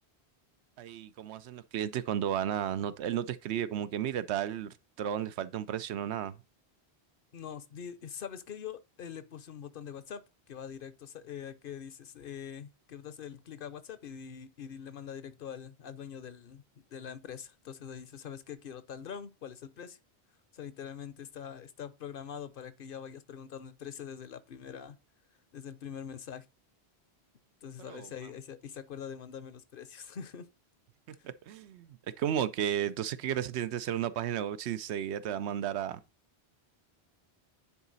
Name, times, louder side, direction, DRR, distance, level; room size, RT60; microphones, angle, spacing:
voice 1, 0.8-6.4 27.8-28.1 31.2-36.0, right 10 dB, 85° right, 0.9 m, -33 dB
voice 2, 7.3-10.2 10.5-16.6 16.9-20.0 20.5-25.0 25.5-26.5 27.6-30.5 31.2-31.3, left 8 dB, 60° left, 0.8 m, -44 dB
9.7 x 4.0 x 4.0 m
omnidirectional pair, 1.1 m